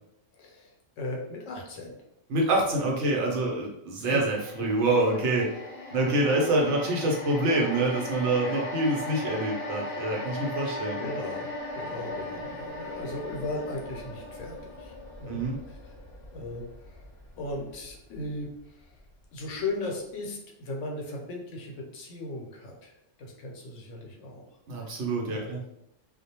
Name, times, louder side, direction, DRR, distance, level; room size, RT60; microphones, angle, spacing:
voice 1, 0.3-2.0 4.1-4.2 6.2-6.6 8.1-8.6 11.0-14.9 15.2-15.4 15.7-15.9 16.3-17.1 17.4-18.9 19.3-24.5 24.8-25.5, left 2 dB, 80° left, 0 dB, 1.0 m, -37 dB
voice 2, 2.3-5.5 5.9-11.0 15.3-15.6 24.7-25.6, right 2 dB, 70° right, -1 dB, 0.9 m, -26 dB
sound 1, 4.3-18.6 19.0-19.1, left 2 dB, 35° left, 0.7 m, -38 dB
2.3 x 2.1 x 2.8 m, 0.80 s
omnidirectional pair, 1.3 m